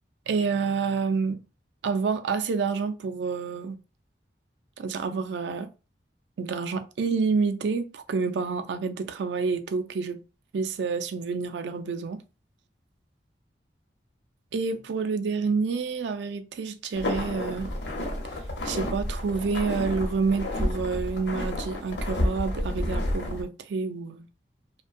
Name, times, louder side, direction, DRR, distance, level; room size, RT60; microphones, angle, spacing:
voice 1, 0.3-1.4 1.8-3.8 4.8-5.7 6.4-10.2 10.5-12.2 14.5-17.7 18.6-24.3, right 4 dB, 75° right, 0.4 m, -28 dB
sound 1, 16.9-23.4, left 1 dB, 80° left, 0.8 m, -30 dB
2.6 x 2.2 x 2.4 m
head